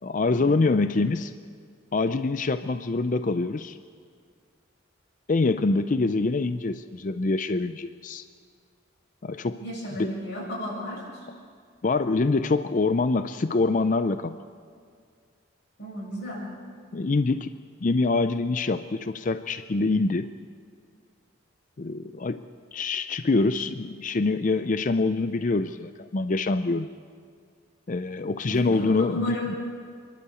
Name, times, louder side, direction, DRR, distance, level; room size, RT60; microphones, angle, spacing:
voice 1, 0.0-1.3 1.9-3.8 5.3-8.3 9.2-9.6 10.0-10.2 11.8-14.4 16.9-17.5 17.8-20.3 21.8-22.4 22.7-26.9 27.9-29.4, left 3 dB, 40° left, 11 dB, 0.5 m, -25 dB
voice 2, 9.6-11.3 15.8-16.4 28.5-29.5, left 1 dB, 60° left, -4 dB, 7.9 m, -34 dB
28.5 x 12.0 x 8.3 m, 2.1 s
head